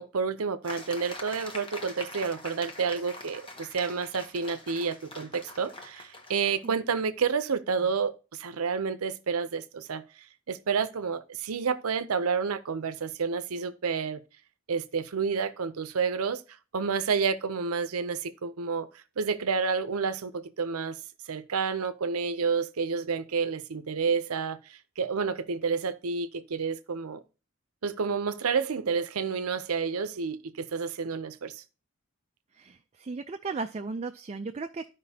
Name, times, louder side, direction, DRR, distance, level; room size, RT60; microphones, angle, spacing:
voice 1, 0.0-10.0 10.5-14.2 14.7-16.4 16.7-18.9 19.2-21.0 21.3-27.2 27.8-31.6, right 5 dB, 85° right, 0.6 m, -30 dB
sound 1, 0.6-7.1, left 2 dB, 25° left, 1.0 m, -43 dB
voice 2, 32.6-34.9, right 4 dB, 30° right, 0.4 m, -36 dB
13.0 x 5.1 x 2.8 m
head